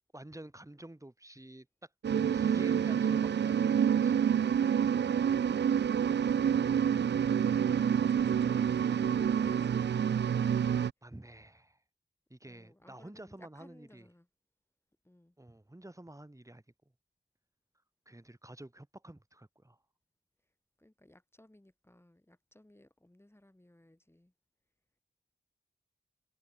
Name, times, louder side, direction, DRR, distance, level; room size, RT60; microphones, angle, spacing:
voice 1, 0.1-1.7 2.3-4.2 11.0-11.8 12.3-14.1 15.4-16.6 18.1-19.8, right 1 dB, 15° right, 3.8 m, -50 dB
sound 1, 2.0-10.9, right 8 dB, 60° right, 0.4 m, -28 dB
voice 2, 5.0-7.0 7.9-10.8 12.5-14.3 15.0-15.4 20.8-24.3, left 1 dB, 10° left, 2.9 m, -60 dB
wide cardioid pair, 75°, 20 cm